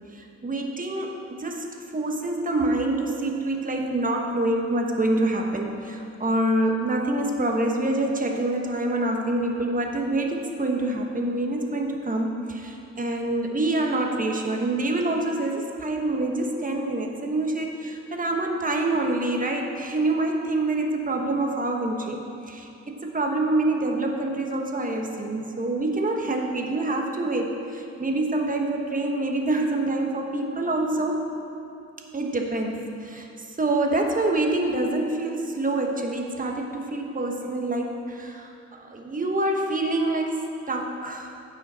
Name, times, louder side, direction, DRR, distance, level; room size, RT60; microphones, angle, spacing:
voice 1, 0.0-22.2 22.5-31.3 32.1-41.3, right 2 dB, 25° right, 2 dB, 1.3 m, -26 dB
15.5 x 5.7 x 4.2 m, 2.7 s
cardioid pair, 90°, 30 cm